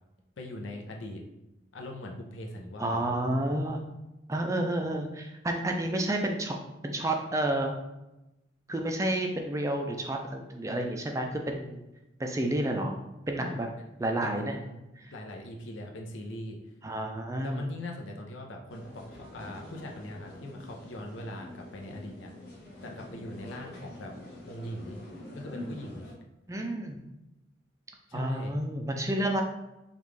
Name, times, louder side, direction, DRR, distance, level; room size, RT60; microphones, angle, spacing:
voice 1, 0.4-1.2 1.7-3.0 13.4-13.7 14.2-14.8 15.1-16.6 17.4-22.3 22.8-24.1 24.5-25.0 25.3-26.1 28.1-28.5, left 1 dB, 80° left, 1 dB, 0.7 m, -41 dB
voice 2, 2.8-3.8 4.3-6.6 6.8-7.8 8.7-11.8 12.2-13.0 13.3-13.7 14.0-14.6 15.0-15.1 16.8-17.7 26.5-27.0 28.1-29.4, right 1 dB, 15° right, 3 dB, 0.3 m, -30 dB
sound 1, 18.7-26.1, left 1 dB, 50° left, 1.1 m, -46 dB
5.3 x 2.4 x 3.2 m, 0.96 s
head